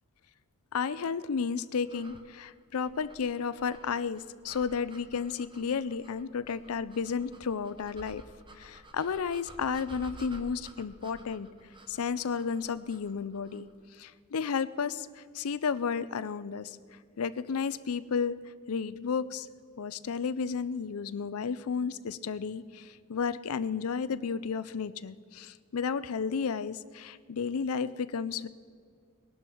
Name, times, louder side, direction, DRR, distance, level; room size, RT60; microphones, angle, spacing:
voice 1, 0.7-8.2 8.6-11.5 11.9-13.7 14.0-16.8 17.2-18.3 18.7-19.5 19.8-28.5, left 6 dB, 70° left, 15 dB, 0.5 m, -32 dB
sound 1, 1.8-13.7, right 1 dB, 20° right, 1.1 m, -52 dB
20.5 x 12.0 x 4.5 m, 2.1 s
head